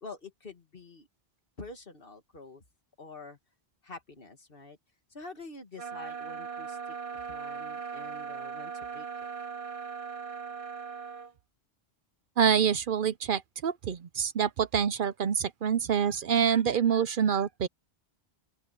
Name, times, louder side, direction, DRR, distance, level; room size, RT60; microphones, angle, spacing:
voice 1, 0.0-1.1 1.6-2.6 3.0-3.4 3.8-4.8 5.1-9.1, left 3 dB, 60° left, 2.3 m, -47 dB
sound 1, 5.8-11.3, right 6 dB, 35° right, 0.9 m, -39 dB
voice 2, 12.4-17.7, right 7 dB, 60° right, 0.8 m, -26 dB
open air
omnidirectional pair, 1.1 m